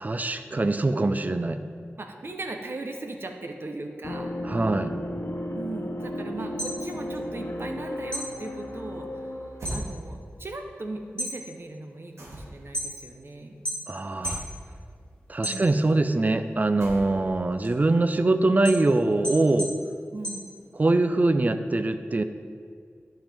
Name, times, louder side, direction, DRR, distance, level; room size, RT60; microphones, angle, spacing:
voice 1, 0.0-1.6 4.4-5.0 13.9-14.4 15.3-19.7 20.8-22.2, right 2 dB, 35° right, 10 dB, 0.4 m, -23 dB
voice 2, 2.0-4.4 5.5-13.5 15.4-15.8 20.1-20.5, right 2 dB, 55° right, 4 dB, 0.8 m, -38 dB
sound 1, 4.0-9.8, left 1 dB, 70° left, 0.7 m, -34 dB
sound 2, 6.4-7.8 8.1-9.9 10.2-10.7 11.0-13.2 13.6-14.5 14.9-16.1 16.5-21.1, equal, 20° left, 1.7 m, -35 dB
sound 3, 9.6-9.9 12.2-12.7 14.2-14.5 16.8-17.3, right 1 dB, 80° right, 1.9 m, -37 dB
11.5 x 5.6 x 3.5 m, 2.1 s
wide cardioid pair, 80°, 5 cm